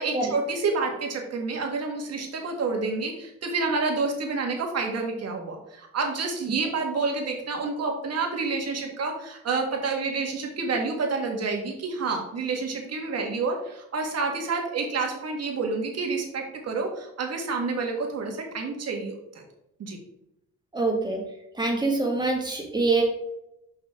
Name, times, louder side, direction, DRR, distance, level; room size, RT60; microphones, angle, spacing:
voice 1, 0.0-19.4 19.8-20.0, right 4 dB, 55° right, 2 dB, 1.9 m, -29 dB
voice 2, 20.7-21.2 21.5-23.0, right 3 dB, 15° right, 0 dB, 2.1 m, -25 dB
6.8 x 5.6 x 3.7 m, 0.85 s
cardioid pair, 90°, 30 cm